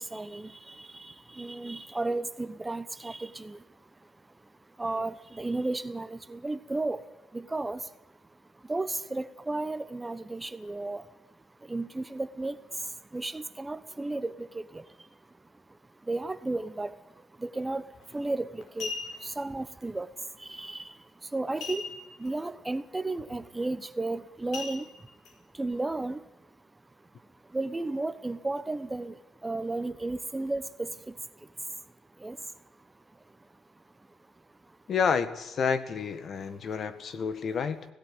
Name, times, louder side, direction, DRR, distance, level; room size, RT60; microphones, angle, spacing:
voice 1, 0.0-34.8 36.5-36.6, right 2 dB, 15° right, 13 dB, 1.1 m, -35 dB
sound 1, 17.9-18.1 18.6-19.4 21.6-22.3 22.6-22.7 23.2-23.4 24.5-25.3 25.9-26.0, left 4 dB, 80° left, 4.9 m, -38 dB
voice 2, 34.9-37.9, left 6 dB, 55° left, 11 dB, 1.7 m, -29 dB
17.0 x 16.5 x 9.7 m, 0.95 s
cardioid pair, 90°, 0 cm